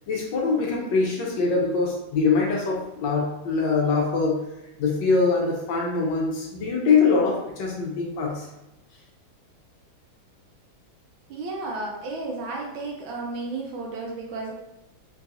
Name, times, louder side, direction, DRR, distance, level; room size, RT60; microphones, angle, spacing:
voice 1, 0.1-4.4 4.8-8.5, left 4 dB, 70° left, -2 dB, 1.2 m, -23 dB
voice 2, 11.3-14.5, right 3 dB, 80° right, -1 dB, 1.3 m, -33 dB
3.8 x 2.3 x 2.7 m, 0.91 s
omnidirectional pair, 2.2 m